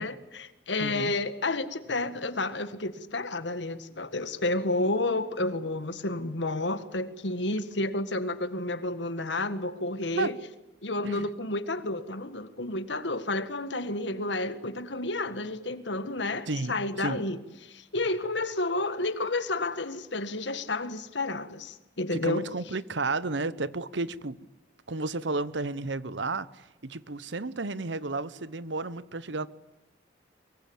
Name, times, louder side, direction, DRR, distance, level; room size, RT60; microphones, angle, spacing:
voice 1, 0.0-10.4 10.8-17.4 17.7-22.4, left 2 dB, 80° left, 1.8 m, -31 dB
voice 2, 0.8-1.1 10.1-10.3 11.0-11.3 16.5-17.2 22.1-24.4 24.9-29.5, right 3 dB, 80° right, 1.0 m, -32 dB
24.0 x 23.0 x 8.8 m
head